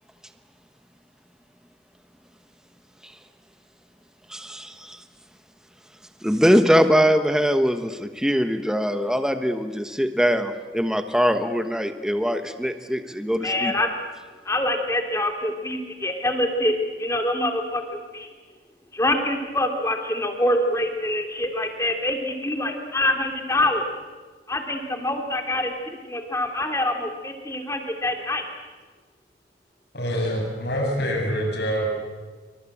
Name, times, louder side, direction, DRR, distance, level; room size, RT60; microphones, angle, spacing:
voice 1, 4.3-5.0 6.2-13.7, equal, 5° right, 8 dB, 1.2 m, -22 dB
voice 2, 13.4-13.9 14.4-18.3 18.9-23.9 24.5-25.7 26.1-28.4, left 1 dB, 15° left, 4 dB, 3.1 m, -25 dB
voice 3, 29.9-31.8, equal, 65° left, 1 dB, 7.5 m, -25 dB
26.5 x 24.5 x 8.6 m, 1.4 s
head